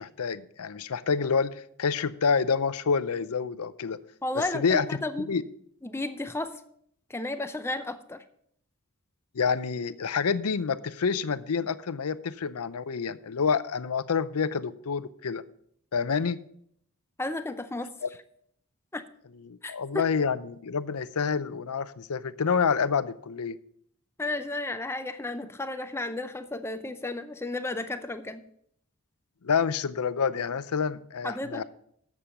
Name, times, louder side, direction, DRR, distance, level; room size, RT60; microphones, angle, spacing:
voice 1, 0.0-4.0 4.3-4.9 5.3-5.4 9.3-15.4 15.9-16.4 18.0-18.1 19.4-23.6 29.4-31.6, left 5 dB, 80° left, 15 dB, 0.6 m, -28 dB
voice 2, 4.2-5.3 5.8-6.6 7.1-8.2 17.2-17.9 18.9-19.0 19.6-20.1 24.2-28.4 31.2-31.6, left 2 dB, 10° left, 10 dB, 0.5 m, -33 dB
11.5 x 7.4 x 5.3 m, 0.68 s
head